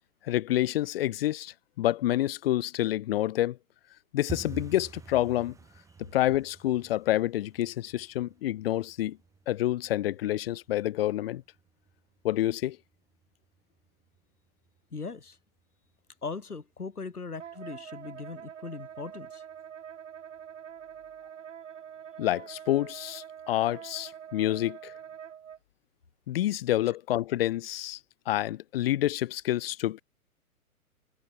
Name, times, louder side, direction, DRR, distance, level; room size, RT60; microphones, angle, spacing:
voice 1, 0.2-3.6 4.1-5.5 6.0-9.2 9.5-11.4 12.2-12.8 22.2-24.9 26.3-28.0 28.2-30.0, left 14 dB, 40° left, 1.5 m, -28 dB
sound 1, 4.3-15.0 15.3-16.0 16.2-16.5 16.8-17.2 17.5-17.6 18.1-18.6 18.9-19.0 19.5-19.6, right 5 dB, 5° right, 1.6 m, -49 dB
voice 2, 14.9-15.4 16.2-19.4 26.9-27.0, left 4 dB, 80° left, 1.8 m, -39 dB
Wind instrument woodwind instrument, 17.4-25.6, right 9 dB, 55° right, 2.5 m, -45 dB
figure-of-eight pair, 115°, 44 cm